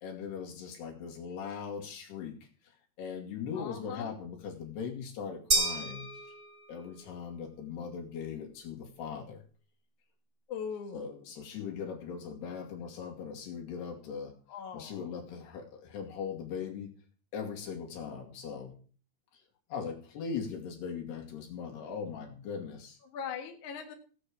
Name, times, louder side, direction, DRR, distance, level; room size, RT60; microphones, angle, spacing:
voice 1, 0.0-2.3 3.0-6.1 6.7-9.4 10.9-14.3 14.7-16.9 17.3-18.8 19.3-19.4 19.7-23.0, left 6 dB, 75° left, 0 dB, 4.4 m, -39 dB
voice 2, 3.5-4.2 10.5-11.2 14.5-15.0 23.0-23.9, left 7 dB, 55° left, 2 dB, 2.6 m, -40 dB
sound 1, 5.5-7.0, right 2 dB, 25° right, 2.8 m, -31 dB
17.5 x 7.9 x 4.9 m, 0.41 s
omnidirectional pair, 4.8 m